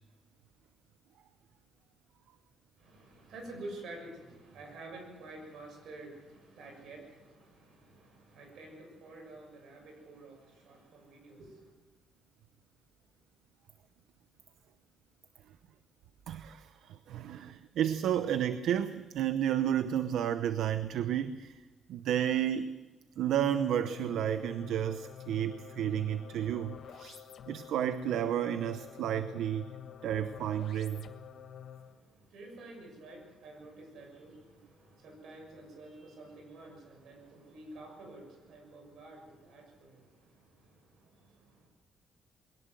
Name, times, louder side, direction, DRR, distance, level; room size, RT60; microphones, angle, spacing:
voice 1, 2.8-11.7 31.7-41.7, right 2 dB, 70° right, 3 dB, 6.7 m, -50 dB
voice 2, 16.3-21.6 21.9-22.7 23.2-29.7 30.0-31.1, right 10 dB, 90° right, 11 dB, 0.8 m, -32 dB
sound 1, 23.2-32.0, left 9 dB, 60° left, 1.4 m, -48 dB
21.5 x 18.0 x 7.7 m, 1.3 s
cardioid pair, 160°, 0 cm